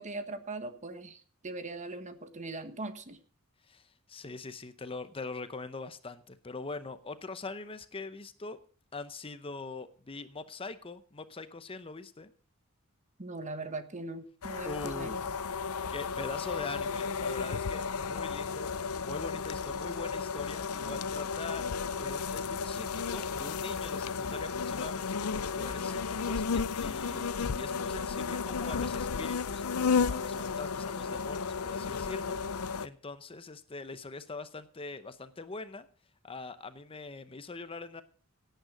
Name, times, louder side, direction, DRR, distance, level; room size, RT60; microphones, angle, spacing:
voice 1, 0.0-3.2 13.2-15.1, right 2 dB, 35° right, 10 dB, 1.3 m, -40 dB
voice 2, 3.6-8.6 8.9-12.3 14.7-15.3 15.9-21.7 22.0-35.9 36.2-38.0, left 3 dB, 25° left, 12 dB, 0.7 m, -43 dB
sound 1, 14.4-32.9, left 5 dB, 75° left, 0.6 m, -33 dB
17.0 x 9.2 x 5.1 m, 0.41 s
head